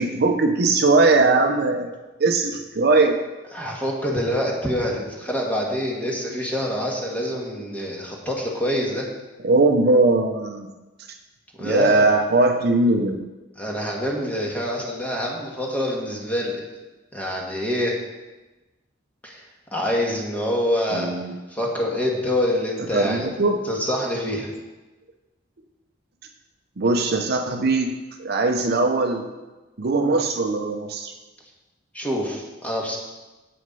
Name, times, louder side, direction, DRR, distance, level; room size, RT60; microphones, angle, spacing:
voice 1, 0.0-3.2 9.4-10.7 11.6-13.2 20.9-21.4 22.9-23.7 26.8-29.3 29.8-31.1, right 3 dB, 60° right, 4 dB, 0.7 m, -20 dB
voice 2, 3.5-9.1 11.6-12.1 13.6-16.6 17.1-18.0 19.2-19.4 19.7-21.1 21.5-23.3 23.7-24.5 31.9-33.0, equal, 10° left, -2 dB, 1.5 m, -26 dB
7.8 x 6.4 x 5.4 m, 1.1 s
head